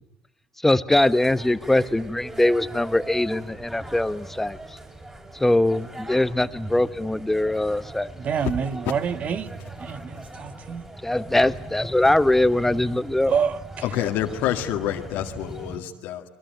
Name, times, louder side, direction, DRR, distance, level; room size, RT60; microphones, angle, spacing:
voice 1, 0.6-4.6 5.4-8.1 11.0-13.3, left 1 dB, 10° left, 14 dB, 1.1 m, -22 dB
sound 1, 0.9-15.8, right 1 dB, 15° right, 6.5 m, -40 dB
voice 2, 8.2-9.5 9.8-10.9 11.3-11.5 13.3-14.1, right 7 dB, 50° right, 12 dB, 1.6 m, -28 dB
voice 3, 13.8-16.3, left 12 dB, 75° left, 4 dB, 2.0 m, -27 dB
29.0 x 21.5 x 9.2 m, 0.82 s
supercardioid pair, 85°, 3 cm